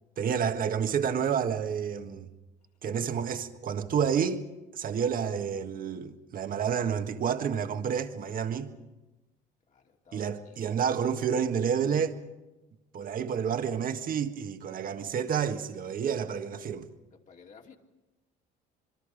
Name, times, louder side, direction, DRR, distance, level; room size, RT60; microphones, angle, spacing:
voice 1, 0.2-2.3 2.8-4.4 4.7-8.7 10.1-12.1 12.9-16.9, right 7 dB, 50° right, 1.6 m, -29 dB
voice 2, 9.7-10.6 13.1-13.2 17.1-17.8, left 6 dB, 45° left, 2.9 m, -55 dB
26.0 x 23.0 x 5.2 m
cardioid pair, 100°, 19 cm